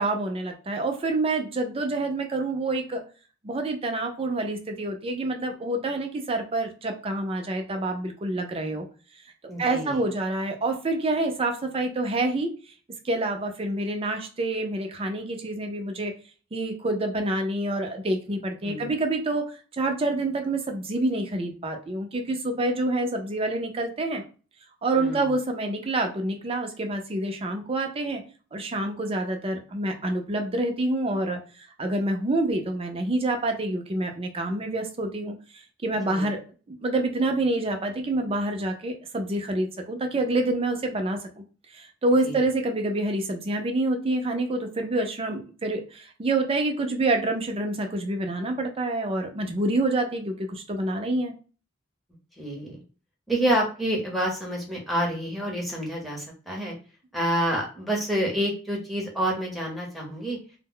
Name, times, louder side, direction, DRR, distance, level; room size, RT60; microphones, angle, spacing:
voice 1, 0.0-3.0 3.4-8.8 9.6-12.5 13.0-16.1 16.5-24.2 24.8-28.2 28.5-36.4 36.7-41.2 41.7-51.3, right 2 dB, 30° right, 4 dB, 0.5 m, -27 dB
voice 2, 9.5-10.0 18.6-18.9 24.9-25.3 36.1-36.3 42.2-42.3 52.4-52.8 53.3-56.7 57.1-60.4, right 1 dB, ahead, -2 dB, 0.8 m, -28 dB
2.1 x 2.1 x 3.6 m, 0.37 s
head